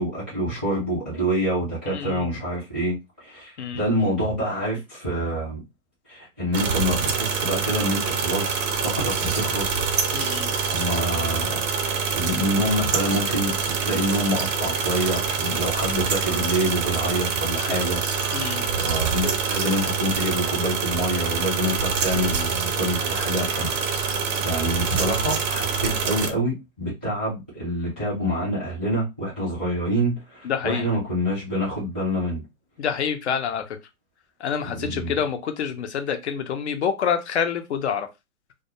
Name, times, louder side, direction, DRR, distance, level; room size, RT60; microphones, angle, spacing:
voice 1, 0.0-5.6 6.1-9.9 10.7-11.6 12.1-13.6 13.8-18.0 18.7-23.7 24.4-32.4 34.6-35.1, equal, 10° right, 0.3 m, -26 dB
voice 2, 1.9-2.3 3.6-3.8 10.1-10.5 17.7-17.8 18.3-18.6 30.4-30.9 32.8-33.8 34.4-38.1, left 7 dB, 50° left, 0.6 m, -27 dB
sound 1, 6.5-26.3, right 5 dB, 60° right, 0.7 m, -25 dB
2.3 x 2.2 x 2.8 m
hypercardioid pair, 135°, 42 cm